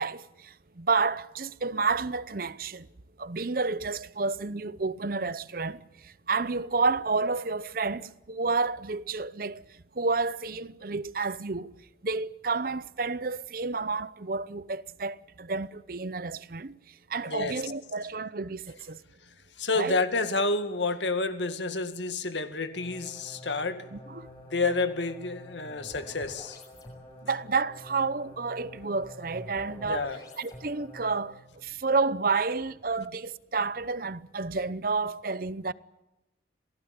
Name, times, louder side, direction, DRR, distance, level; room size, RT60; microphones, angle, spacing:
voice 1, 0.0-2.9 3.2-11.7 12.0-19.0 19.7-20.0 23.9-24.3 27.2-30.1 30.4-35.7, right 4 dB, 50° right, 0.8 m, -30 dB
voice 2, 17.3-17.6 19.6-23.9 24.5-26.6 29.8-30.2, left 3 dB, 80° left, 2.1 m, -29 dB
sound 1, 22.7-31.5, left 1 dB, 20° left, 6.7 m, -47 dB
27.5 x 18.0 x 8.8 m
head